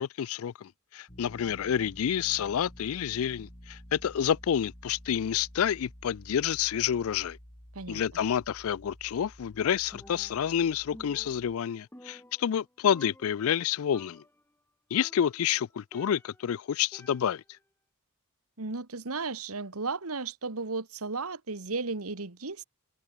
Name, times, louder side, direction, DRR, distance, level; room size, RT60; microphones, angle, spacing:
voice 1, 0.0-7.4 7.9-14.2 14.9-17.4, left 9 dB, 70° left, 0.4 m, -29 dB
sound 1, 1.1-11.6, equal, 30° left, 4.3 m, -51 dB
Percussion, 9.9-10.6 10.9-12.7 12.9-13.6 13.9-14.4 14.9-16.5 16.9-17.6, left 1 dB, 10° left, 3.5 m, -53 dB
voice 2, 18.6-22.6, right 3 dB, 80° right, 1.8 m, -34 dB
open air
head